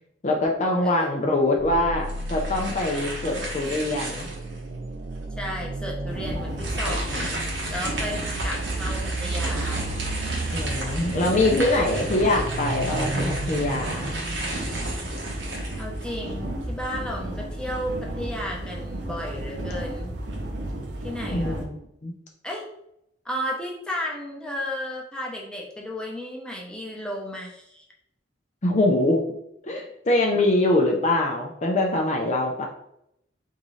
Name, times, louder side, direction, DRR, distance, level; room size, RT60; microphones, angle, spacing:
voice 1, 0.2-4.3 10.5-14.2 21.3-22.1 28.6-29.3 29.6-32.7, left 2 dB, 40° left, 1 dB, 0.6 m, -23 dB
sound 1, 1.6-15.3, right 2 dB, 45° right, 0.3 m, -34 dB
sound 2, 2.0-4.6 5.2-5.3 6.5-16.3, right 1 dB, 85° right, 1.2 m, -34 dB
voice 2, 5.4-7.4 7.7-9.9 11.6-12.0 15.8-20.1 21.0-21.6 22.4-22.6 23.2-27.8, equal, 5° left, -3 dB, 0.8 m, -33 dB
sound 3, 6.1-21.7, right 1 dB, 65° right, 0.8 m, -33 dB
4.0 x 3.7 x 3.1 m, 0.78 s
head